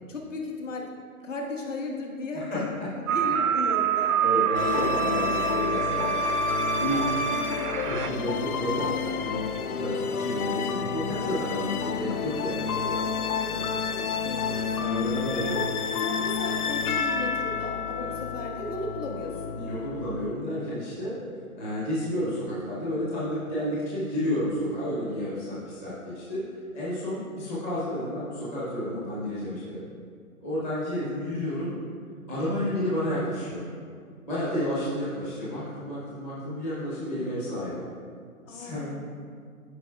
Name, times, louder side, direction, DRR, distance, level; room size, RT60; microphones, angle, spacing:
voice 1, 0.1-0.9 1.2-2.7 3.0-4.2 6.9-7.0 12.7-15.6 16.0-19.6 38.5-39.0, left 2 dB, 55° left, 0 dB, 1.4 m, -36 dB
voice 2, 2.3-2.9 4.2-6.4 6.8-7.1 7.8-12.7 13.5-13.6 14.4-15.5 18.0-18.1 19.6-21.2 21.6-26.4 26.7-29.8 30.4-31.7 32.3-33.6 34.2-37.8 38.5-39.0, equal, 10° left, -10 dB, 0.8 m, -31 dB
sound 1, 3.1-8.1, right 7 dB, 70° right, 0.6 m, -26 dB
sound 2, 4.5-20.3, left 6 dB, 75° left, 0.7 m, -30 dB
13.0 x 5.3 x 2.3 m, 2.1 s
hypercardioid pair, 160°, 44 cm